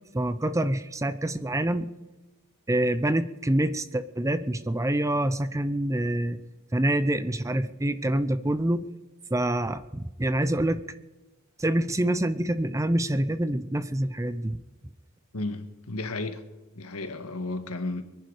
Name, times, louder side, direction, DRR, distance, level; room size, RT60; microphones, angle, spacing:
voice 1, 0.1-1.9 2.7-6.4 6.7-8.8 9.3-10.8 11.6-14.6, right 1 dB, 15° right, 0.6 m, -26 dB
voice 2, 15.3-16.4 16.7-18.0, left 2 dB, 80° left, 1.6 m, -33 dB
23.5 x 10.5 x 5.0 m
head